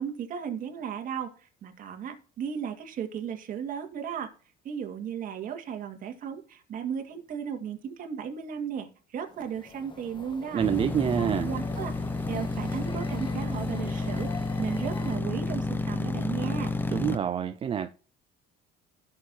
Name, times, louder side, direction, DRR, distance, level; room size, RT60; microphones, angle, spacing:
voice 1, 0.0-4.3 4.6-10.6 11.2-11.9 12.3-14.3 14.6-16.7, right 8 dB, 50° right, 2.1 m, -35 dB
sound 1, 9.3-15.2, left 3 dB, 25° left, 1.6 m, -43 dB
voice 2, 10.5-11.5 16.9-17.9, right 9 dB, 30° right, 0.4 m, -27 dB
sound 2, 10.6-17.2, left 3 dB, 10° left, 0.8 m, -31 dB
16.0 x 6.5 x 2.8 m
cardioid pair, 135°, 19 cm